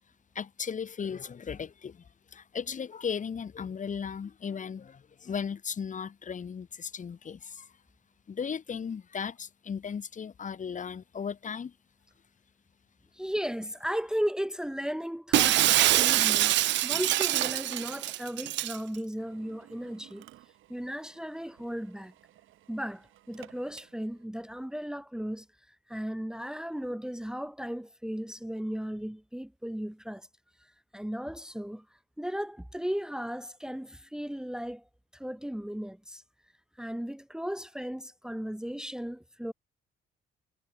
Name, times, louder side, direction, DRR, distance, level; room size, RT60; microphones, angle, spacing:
voice 1, 0.3-2.0 2.3-7.7 8.3-11.7, left 6 dB, 40° left, 1.4 m, -36 dB
voice 2, 13.1-20.2 20.7-22.1 22.7-30.3 30.9-31.8 32.2-34.8 35.1-36.2 36.8-39.5, equal, 5° right, 1.5 m, -36 dB
Shatter, 15.3-18.8, right 15 dB, 65° right, 0.4 m, -24 dB
Drill, 19.2-24.3, right 14 dB, 85° right, 5.8 m, -57 dB
cardioid pair, 90°, 20 cm